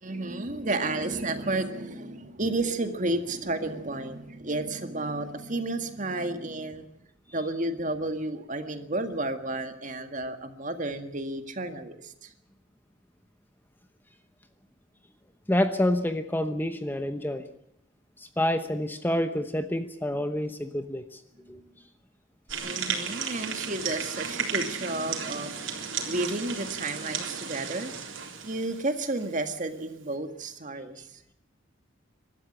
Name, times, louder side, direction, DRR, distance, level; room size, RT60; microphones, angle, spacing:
voice 1, 0.0-6.9 7.3-12.3 22.6-28.2 28.4-31.2, right 2 dB, 40° right, 7 dB, 1.8 m, -32 dB
voice 2, 15.5-17.4 18.2-21.2 21.5-21.6, left 1 dB, 10° left, 8 dB, 0.9 m, -28 dB
sound 1, 22.5-29.3, right 6 dB, 75° right, 3.9 m, -34 dB
23.5 x 13.0 x 9.9 m, 0.77 s
head